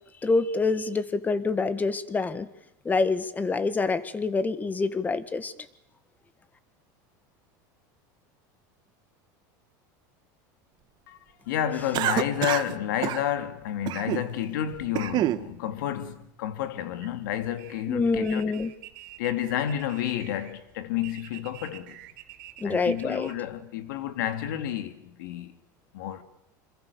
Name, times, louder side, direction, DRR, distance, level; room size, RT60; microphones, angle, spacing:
voice 1, 0.2-2.5 2.8-5.5 17.9-18.7 22.6-23.3, left 3 dB, 15° left, 1.7 m, -26 dB
voice 2, 11.5-18.4 19.2-22.0 22.6-25.5 25.9-26.2, left 11 dB, 85° left, 2.5 m, -30 dB
Cough, 11.9-12.7 13.0-13.2 13.9-14.3 14.7-15.4, right 14 dB, 45° right, 1.3 m, -27 dB
ambi - whistle, 17.0-23.3, right 15 dB, 80° right, 3.6 m, -48 dB
27.0 x 26.0 x 7.0 m
supercardioid pair, 130°, 10 cm